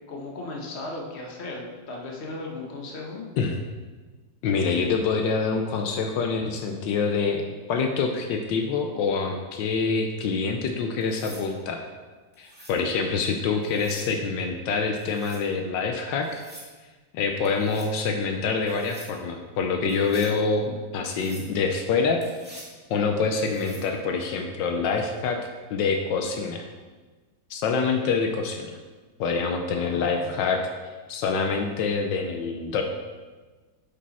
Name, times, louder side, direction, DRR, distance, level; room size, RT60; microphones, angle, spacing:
voice 1, 0.1-3.3 6.4-6.5 29.7-30.3, left 2 dB, 40° left, 0 dB, 1.3 m, -36 dB
voice 2, 4.4-11.8 12.4-16.4 17.1-22.2 22.9-25.4 25.7-26.6 27.5-28.7 29.2-30.6 31.1-32.8, left 4 dB, 80° left, 4 dB, 1.4 m, -26 dB
sound 1, 11.0-11.5 12.3-12.8 13.6-14.1 15.0-15.4 16.2-16.7 17.4-17.9 18.7-19.1 19.9-20.3 21.0-21.5 22.2-22.7 23.4-23.9 25.8-26.1, equal, 5° right, 1.8 m, -47 dB
8.3 x 5.4 x 4.2 m, 1.3 s
omnidirectional pair, 2.0 m